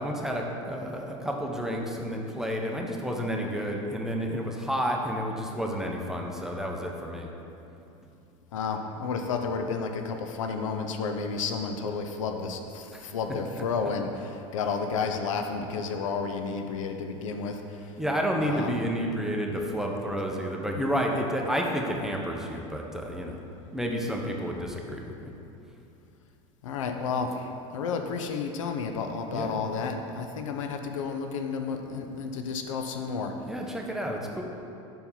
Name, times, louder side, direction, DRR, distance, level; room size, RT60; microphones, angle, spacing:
voice 1, 0.0-7.3 12.9-13.0 13.6-13.7 18.0-23.4 23.7-25.3 29.3-29.5 33.4-34.4, equal, 5° right, 0 dB, 0.8 m, -30 dB
voice 2, 8.5-18.0 18.4-18.8 26.6-33.3, left 5 dB, 80° left, 5 dB, 0.6 m, -31 dB
5.5 x 4.5 x 5.5 m, 2.8 s
hypercardioid pair, 90°, 16 cm